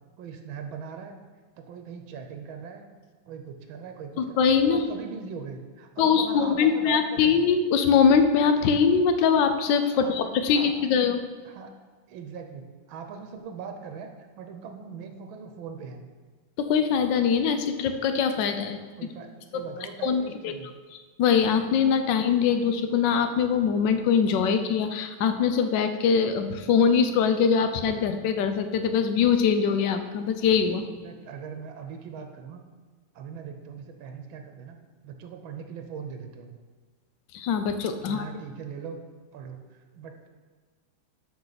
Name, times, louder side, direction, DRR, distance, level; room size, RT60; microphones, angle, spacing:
voice 1, 0.2-1.2 1.6-2.8 3.2-4.4 4.6-7.4 10.0-10.2 10.5-11.0 11.4-11.7 12.1-14.1 14.4-16.1 19.0-20.7 31.0-32.6 33.1-34.8 35.0-36.6 38.0-39.0 39.3-40.3, right 6 dB, 85° right, 5 dB, 1.5 m, -40 dB
voice 2, 4.2-4.8 6.0-11.2 16.6-18.8 20.0-20.5 21.2-30.9 37.3-38.3, left 6 dB, 70° left, 8 dB, 1.3 m, -22 dB
12.5 x 5.0 x 4.0 m, 1.5 s
omnidirectional pair, 2.1 m